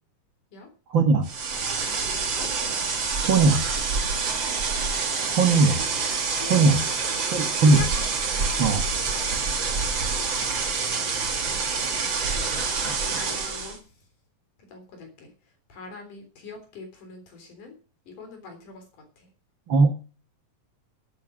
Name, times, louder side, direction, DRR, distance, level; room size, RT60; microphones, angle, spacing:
voice 1, 0.9-1.3 3.2-3.7 5.3-5.8 6.5-6.8 7.3-7.8 8.6-8.9 12.5-13.3 19.7-19.9, right 3 dB, 55° right, 5 dB, 1.3 m, -20 dB
sound 1, 1.2-13.8, right 4 dB, 40° right, 2.2 m, -27 dB
voice 2, 5.2-5.6 6.3-6.9 7.6-7.9 8.2-9.8 10.1-11.6 11.9-12.6 12.9-14.1 14.7-17.7 18.1-19.3, left 4 dB, 65° left, 5 dB, 5.1 m, -44 dB
11.5 x 8.8 x 6.2 m, 0.36 s
omnidirectional pair, 3.9 m